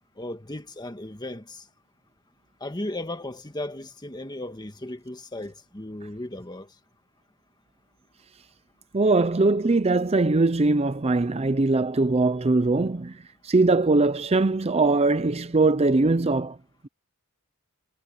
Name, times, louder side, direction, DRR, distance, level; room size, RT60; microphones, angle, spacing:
voice 1, 0.2-1.6 2.6-6.7, left 1 dB, 20° left, 1.6 m, -36 dB
voice 2, 8.9-13.1 13.4-16.6, right 3 dB, 25° right, 0.6 m, -21 dB
head